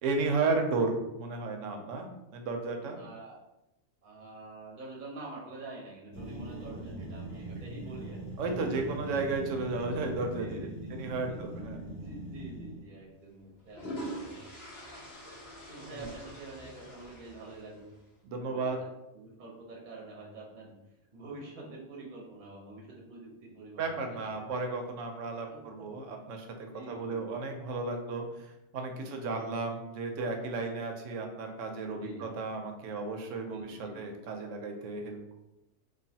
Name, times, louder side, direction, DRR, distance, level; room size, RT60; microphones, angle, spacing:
voice 1, 0.0-3.0 8.4-11.8 16.0-16.1 18.2-18.8 23.8-35.4, right 3 dB, 75° right, 4 dB, 0.9 m, -34 dB
voice 2, 2.9-3.4 4.0-8.3 8.6-9.0 10.4-11.0 11.3-14.4 15.7-17.9 18.3-18.8 19.1-24.3 25.5-25.9 26.7-27.5 28.9-29.4 31.8-32.3 33.5-34.0, right 2 dB, 45° right, -3 dB, 0.8 m, -47 dB
sound 1, 6.1-12.9, right 1 dB, 75° left, 1.5 m, -41 dB
sound 2, 12.0-12.2 13.4-18.0, right 1 dB, 55° left, 1.0 m, -44 dB
3.1 x 2.3 x 2.7 m, 0.91 s
omnidirectional pair, 1.4 m